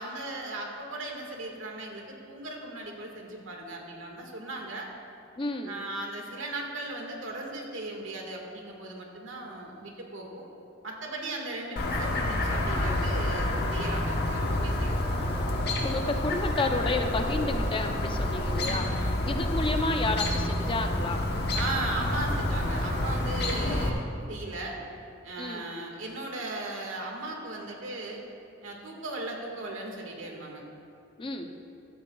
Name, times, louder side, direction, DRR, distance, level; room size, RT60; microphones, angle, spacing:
voice 1, 0.0-4.9 5.6-10.5 10.8-15.0 18.6-19.3 21.5-24.8 25.2-28.2 28.6-30.6, right 2 dB, 75° right, 0 dB, 1.8 m, -37 dB
voice 2, 5.4-5.8 15.8-18.9 19.2-21.3 25.4-25.6 31.2-31.5, left 2 dB, 25° left, 5 dB, 0.6 m, -30 dB
Chirp tweet, 11.8-23.9, left 1 dB, 55° left, 1.1 m, -28 dB
15.0 x 13.0 x 2.3 m, 2.5 s
head